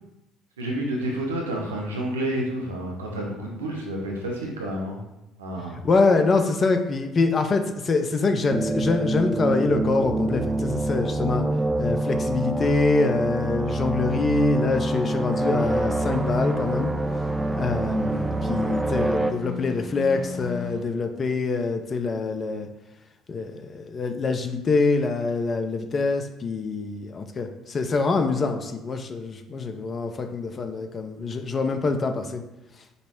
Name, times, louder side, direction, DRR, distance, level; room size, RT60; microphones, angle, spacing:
voice 1, 0.6-5.0 5.4-5.8, right 1 dB, 85° right, -2 dB, 0.9 m, -29 dB
voice 2, 5.8-11.5 11.8-16.9 17.6-22.7 23.3-32.4, left 3 dB, 40° left, 6 dB, 0.5 m, -25 dB
sound 1, 8.5-19.3, right 2 dB, 15° right, 0.3 m, -26 dB
sound 2, 15.6-20.8, left 4 dB, 55° left, 1.1 m, -37 dB
5.3 x 2.0 x 4.4 m, 0.93 s
hypercardioid pair, 55°, 0 cm